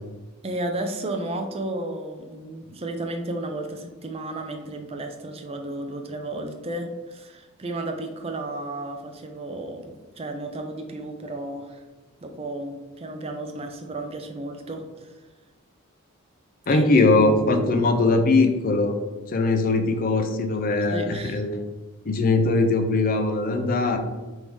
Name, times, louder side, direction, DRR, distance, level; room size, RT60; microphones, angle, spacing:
voice 1, 0.4-11.8 12.2-15.2 16.7-17.1 20.9-21.5, right 2 dB, 25° right, 5 dB, 0.4 m, -33 dB
voice 2, 16.7-19.0 19.3-21.5 22.1-24.0, left 3 dB, 40° left, 6 dB, 0.4 m, -21 dB
3.6 x 2.7 x 4.6 m, 1.2 s
head